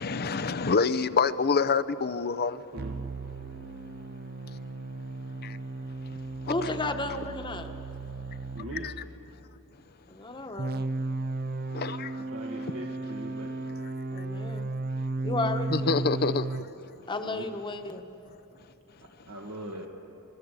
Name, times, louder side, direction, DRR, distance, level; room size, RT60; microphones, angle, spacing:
voice 1, 0.0-2.6 5.4-5.6 8.6-8.9 11.7-12.2 12.5-12.7 15.7-16.5, left 4 dB, 45° left, 0.7 m, -27 dB
sound 1, 2.8-8.7 10.6-16.7, right 2 dB, 45° right, 0.6 m, -35 dB
voice 2, 6.5-7.7 10.1-10.8 14.1-14.7 15.2-16.3 17.1-18.1, left 2 dB, 20° left, 1.3 m, -33 dB
voice 3, 8.6-8.9 12.3-13.5 17.2-17.5 19.3-19.9, right 1 dB, 65° right, 1.8 m, -40 dB
27.5 x 20.5 x 8.3 m
head